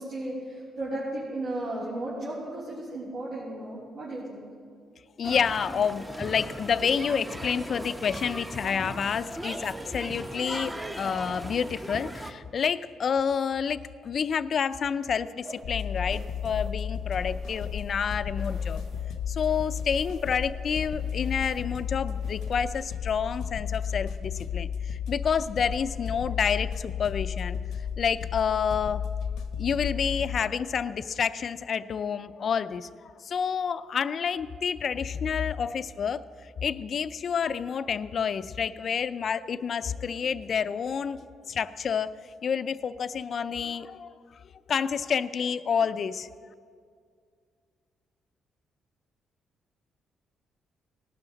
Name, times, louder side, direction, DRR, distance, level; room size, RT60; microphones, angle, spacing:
voice 1, 0.0-4.4, right 1 dB, 70° right, -9 dB, 3.7 m, -34 dB
voice 2, 5.2-18.8 19.3-27.6 28.0-29.0 29.6-32.9 33.2-36.2 36.6-41.2 41.5-44.1 44.7-46.3, left 7 dB, 55° left, 13 dB, 0.5 m, -29 dB
sound 1, 5.2-12.3, right 1 dB, 15° right, 0.8 m, -38 dB
sound 2, 15.4-18.0 18.3-19.1 19.4-22.9, right 3 dB, 55° right, 2.0 m, -49 dB
sound 3, 15.6-30.4, left 7 dB, 90° left, 0.9 m, -33 dB
18.5 x 11.5 x 4.0 m, 2.2 s
cardioid pair, 90°, 0 cm